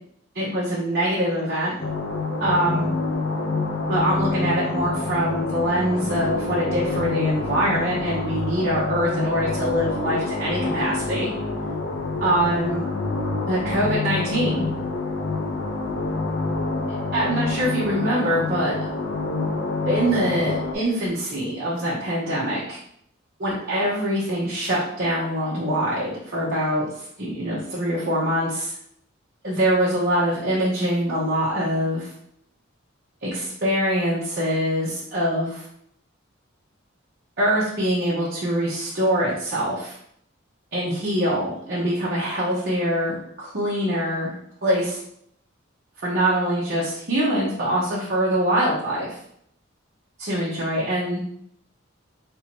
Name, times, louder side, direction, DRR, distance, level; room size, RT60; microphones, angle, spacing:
voice 1, 0.3-1.7 2.4-2.9 3.9-11.3 12.2-12.8 13.5-14.7 17.1-18.9 19.8-22.8 23.4-26.9 27.2-28.7 29.4-32.1 33.2-35.6 37.4-40.0 40.7-44.3 44.6-45.0 46.0-49.2 50.2-51.2, equal, 50° right, -7 dB, 1.0 m, -24 dB
sound 1, 1.8-20.8, left 3 dB, 60° left, 0.6 m, -27 dB
3.5 x 2.8 x 4.5 m, 0.69 s
head